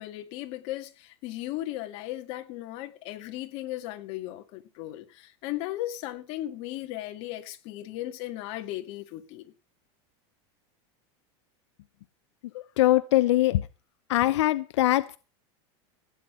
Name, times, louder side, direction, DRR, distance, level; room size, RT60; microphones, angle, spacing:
voice 1, 0.0-9.5, left 15 dB, 40° left, 2.0 m, -36 dB
voice 2, 12.5-13.7 14.1-15.2, left 16 dB, 80° left, 0.8 m, -22 dB
16.0 x 8.7 x 5.9 m
supercardioid pair, 175°, 15 cm